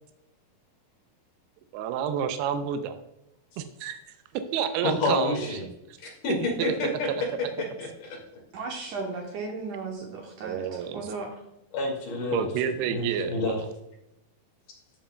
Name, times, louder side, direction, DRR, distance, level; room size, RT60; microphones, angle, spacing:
voice 1, 1.7-3.0 3.6-4.0 4.5-5.5 6.6-7.2 10.4-11.1 12.3-13.6, right 8 dB, 90° right, 8 dB, 2.7 m, -29 dB
voice 2, 4.8-5.6 6.0-7.1 7.8-8.2 11.7-12.5 12.9-13.6, left 2 dB, 55° left, -1 dB, 3.5 m, -29 dB
voice 3, 8.5-11.4, right 4 dB, 75° right, 1 dB, 2.0 m, -36 dB
12.5 x 7.4 x 2.3 m, 0.87 s
omnidirectional pair, 4.6 m